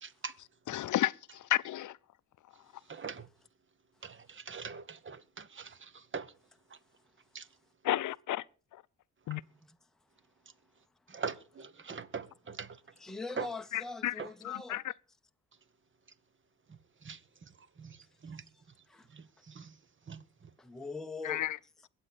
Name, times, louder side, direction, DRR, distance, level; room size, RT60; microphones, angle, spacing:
voice 1, 0.0-0.3 2.9-3.3 4.0-6.3 7.3-7.4 11.1-12.8 13.4-13.5 14.2-14.3 17.0-17.5 17.8-18.0 18.2-18.4 19.1-19.7 20.1-20.2, right 5 dB, 40° right, 1.2 m, -42 dB
voice 2, 0.7-2.0 7.8-8.4 9.3-9.4 13.7-14.1 14.4-14.8 21.2-21.6, left 13 dB, 70° left, 0.6 m, -32 dB
voice 3, 12.9-14.8 18.9-19.1 20.6-21.4 21.8-21.9, left 3 dB, ahead, 0.8 m, -42 dB
22.0 x 8.1 x 4.1 m
cardioid pair, 75°, 32 cm